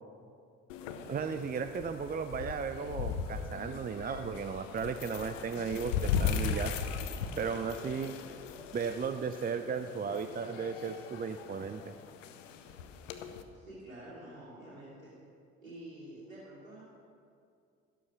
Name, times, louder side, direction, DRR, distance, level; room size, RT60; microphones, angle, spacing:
sound 1, 0.7-13.4, left 7 dB, 70° left, 0.9 m, -38 dB
voice 1, 1.1-6.7 7.4-8.2 8.7-11.8, right 6 dB, 25° right, 9 dB, 0.6 m, -35 dB
voice 2, 13.5-15.1 15.6-16.8, right 1 dB, 85° right, -9 dB, 2.7 m, -48 dB
12.5 x 12.0 x 6.0 m, 2.4 s
figure-of-eight pair, 50°, 39 cm